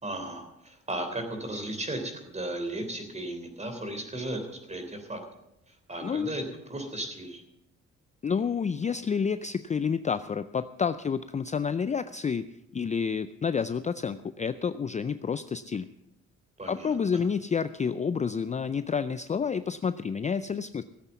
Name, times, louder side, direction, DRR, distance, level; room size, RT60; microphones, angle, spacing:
voice 1, 0.0-5.2 5.7-6.4 6.7-7.4 16.6-17.2, right 1 dB, 20° right, 5 dB, 3.4 m, -35 dB
voice 2, 8.2-12.5 12.7-15.9 16.7-20.8, left 6 dB, 25° left, 13 dB, 0.4 m, -29 dB
16.0 x 8.2 x 7.1 m, 0.86 s
cardioid pair, 90°, 30 cm